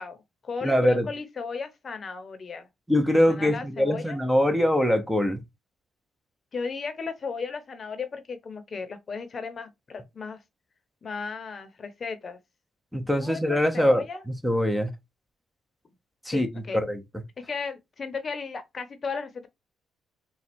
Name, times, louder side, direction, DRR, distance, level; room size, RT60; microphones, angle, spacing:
voice 1, 0.0-2.7 3.1-4.2 6.5-10.4 11.0-12.4 13.2-14.2 16.3-16.8 17.5-19.5, left 5 dB, 40° left, 0.9 m, -35 dB
voice 2, 0.6-1.0 2.9-5.4 12.9-14.0 14.4-14.9 16.3-16.5 16.7-17.0, equal, ahead, 0.8 m, -23 dB
4.1 x 2.3 x 4.3 m
cardioid pair, 90°, 0 cm